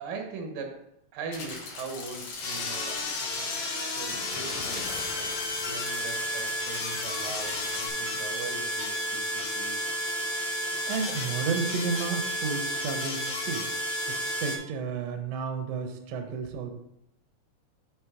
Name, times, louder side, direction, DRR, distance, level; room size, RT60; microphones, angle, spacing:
voice 1, 0.0-5.4 5.6-9.8, right 4 dB, 85° right, 3 dB, 2.8 m, -41 dB
sound 1, 1.3-7.9, left 4 dB, 75° left, 3.1 m, -40 dB
sound 2, 2.4-14.6, left 1 dB, 60° left, 1.9 m, -32 dB
voice 2, 10.9-13.7 14.1-16.7, right 5 dB, 65° right, 5 dB, 1.8 m, -32 dB
9.4 x 3.7 x 4.9 m, 0.78 s
omnidirectional pair, 3.8 m